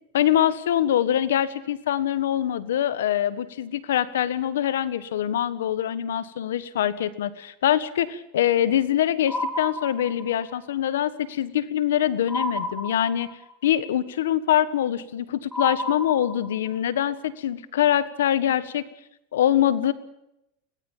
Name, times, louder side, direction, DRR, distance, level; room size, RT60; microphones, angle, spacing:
voice 1, 0.1-13.3 13.6-18.8 19.3-19.9, left 11 dB, 90° left, 15 dB, 1.5 m, -24 dB
sound 1, 9.3-10.5 12.3-13.5 15.5-16.7, left 1 dB, 10° left, 2.8 m, -31 dB
23.0 x 18.0 x 7.3 m, 0.82 s
supercardioid pair, 125°, 0 cm